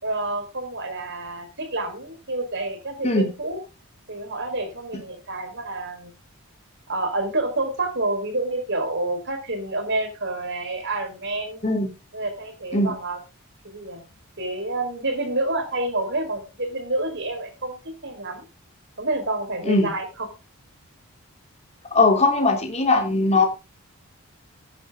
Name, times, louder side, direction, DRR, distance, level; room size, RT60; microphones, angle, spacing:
voice 1, 0.0-3.6 4.1-6.1 6.9-11.7 12.1-13.2 13.6-14.0 14.4-18.4 19.0-20.3, right 2 dB, 55° right, 6 dB, 4.7 m, -28 dB
voice 2, 21.9-23.5, left 3 dB, 30° left, 2 dB, 3.5 m, -19 dB
14.5 x 11.0 x 3.8 m, 0.29 s
head